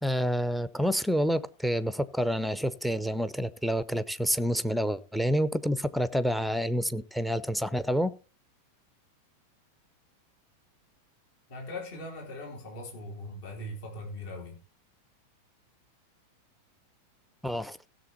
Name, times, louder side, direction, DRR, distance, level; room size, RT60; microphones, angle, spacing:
voice 1, 0.0-8.1 17.4-17.8, equal, ahead, 0.7 m, -28 dB
voice 2, 11.5-14.6, left 1 dB, 50° left, 3.8 m, -40 dB
16.0 x 7.0 x 4.4 m
figure-of-eight pair, 90°, 0 cm